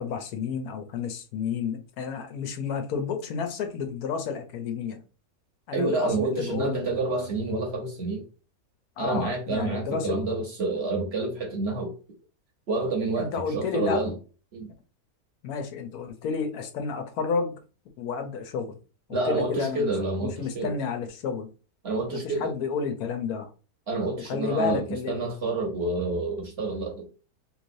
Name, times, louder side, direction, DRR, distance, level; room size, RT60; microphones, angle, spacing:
voice 1, 0.0-5.0 5.7-7.0 9.0-10.2 13.2-14.0 15.4-17.5 18.0-18.8 19.1-19.9 20.2-21.5 22.1-23.5 24.3-25.2, left 5 dB, 80° left, 1.1 m, -31 dB
voice 2, 5.7-8.2 9.0-11.9 12.7-14.1 14.5-14.7 19.1-20.7 21.8-22.5 23.9-27.1, right 2 dB, 50° right, 1.0 m, -28 dB
3.2 x 2.9 x 2.6 m
omnidirectional pair, 1.6 m